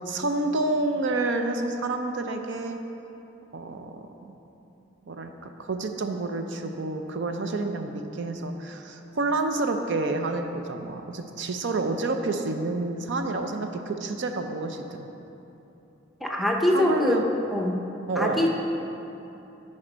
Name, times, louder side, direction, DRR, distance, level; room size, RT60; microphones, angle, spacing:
voice 1, 0.0-2.8 3.5-4.4 5.1-5.3 5.6-15.1 16.7-17.2 18.1-18.5, right 2 dB, 65° right, 6 dB, 0.5 m, -29 dB
voice 2, 16.2-17.2 17.5-17.8 18.1-18.5, left 1 dB, ahead, 0 dB, 0.6 m, -23 dB
10.5 x 4.3 x 5.0 m, 2.9 s
head